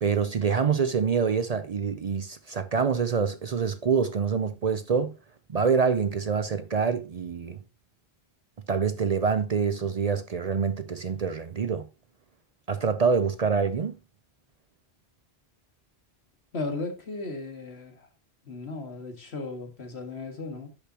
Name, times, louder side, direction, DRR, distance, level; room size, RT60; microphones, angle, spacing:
voice 1, 0.0-5.1 5.5-7.6 8.7-11.9 12.7-13.9, right 6 dB, 45° right, 0.6 m, -26 dB
voice 2, 16.5-18.1 18.5-20.7, left 3 dB, 80° left, 2.1 m, -36 dB
10.0 x 6.8 x 2.9 m
omnidirectional pair, 1.1 m